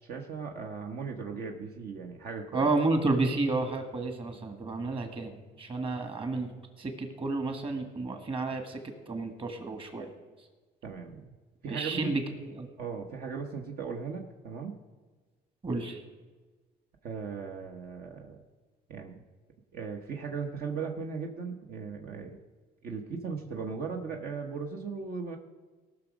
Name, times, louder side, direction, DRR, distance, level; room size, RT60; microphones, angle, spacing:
voice 1, 0.0-2.7 10.8-11.3 11.6-12.0 12.8-14.8 17.0-18.4 18.9-19.2 19.7-22.4 22.8-25.4, right 5 dB, 65° right, 2 dB, 1.2 m, -37 dB
voice 2, 2.5-8.8 9.1-10.1 11.7-12.2 12.6-12.7 15.6-16.0, right 3 dB, 30° right, 6 dB, 1.8 m, -31 dB
18.0 x 6.2 x 5.1 m, 1.3 s
cardioid pair, 110°, 17 cm